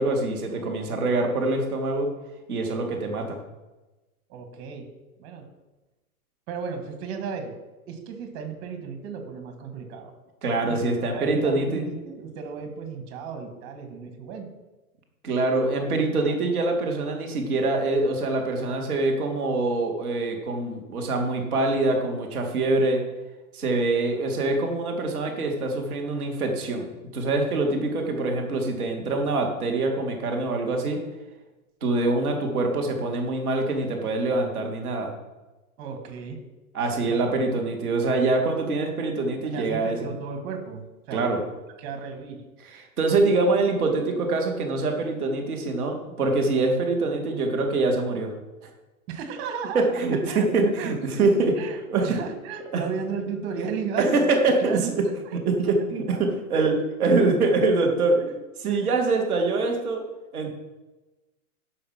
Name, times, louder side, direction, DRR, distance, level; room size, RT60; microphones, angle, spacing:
voice 1, 0.0-2.1 2.5-3.4 10.4-11.8 15.2-23.0 23.5-26.8 27.1-31.0 31.8-35.1 36.7-40.1 41.1-41.4 42.6-48.3 48.6-48.7 49.7-51.5 51.9-52.1 54.0-54.8 55.4-56.7 57.0-58.2 58.6-60.0 60.3-60.5, right 3 dB, ahead, -14 dB, 0.4 m, -24 dB
voice 2, 4.3-4.9 5.2-5.5 6.5-7.5 7.9-10.1 10.7-10.8 11.1-14.5 35.8-36.4 37.1-37.4 39.5-41.5 41.8-42.4 49.1-54.2 54.6-54.9 55.2-55.4 56.5-56.7 58.2-58.3 58.6-59.0, right 6 dB, 25° right, 5 dB, 1.4 m, -34 dB
11.0 x 5.6 x 5.8 m, 1.1 s
hypercardioid pair, 170°, 45 cm